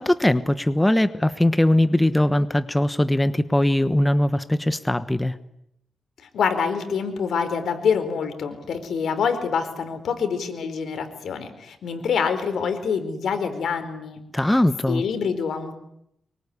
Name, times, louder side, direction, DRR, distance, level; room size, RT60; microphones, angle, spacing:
voice 1, 0.0-5.3 14.3-15.0, left 1 dB, 10° left, 12 dB, 1.2 m, -20 dB
voice 2, 6.3-14.2 14.9-15.7, left 6 dB, 85° left, 9 dB, 4.4 m, -26 dB
25.0 x 24.0 x 9.9 m, 0.78 s
wide cardioid pair, 125°, 0 cm